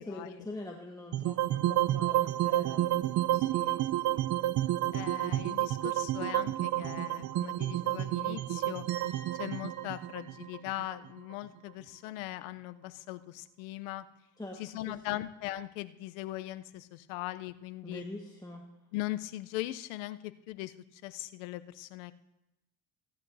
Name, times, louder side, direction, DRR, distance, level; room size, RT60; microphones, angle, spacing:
voice 1, 0.0-2.8 14.4-14.6 14.9-15.2 17.8-18.6, left 2 dB, 10° left, 0 dB, 1.5 m, -43 dB
sound 1, 1.1-11.3, right 14 dB, 45° right, 0.4 m, -30 dB
voice 2, 3.3-4.3 4.9-8.8 9.4-14.1 14.6-18.0 18.9-22.1, left 16 dB, 90° left, 13 dB, 0.6 m, -40 dB
sound 2, 8.9-11.7, right 7 dB, 85° right, 3.5 m, -52 dB
17.0 x 11.0 x 2.7 m, 0.94 s
supercardioid pair, 80°, 39 cm